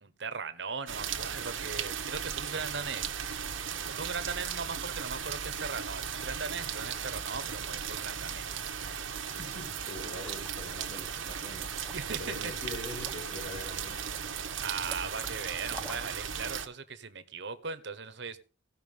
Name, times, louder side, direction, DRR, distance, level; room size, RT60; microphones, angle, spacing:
voice 1, 0.0-3.1 3.9-8.5 11.9-12.5 14.6-18.4, right 5 dB, 65° right, 11 dB, 1.2 m, -39 dB
sound 1, 0.9-16.7, right 7 dB, 85° right, 1.4 m, -36 dB
voice 2, 9.3-11.7 12.2-14.0, left 2 dB, 70° left, -2 dB, 5.9 m, -43 dB
Liquid, 10.1-16.3, equal, 10° left, 1.1 m, -51 dB
17.0 x 5.9 x 5.5 m, 0.37 s
head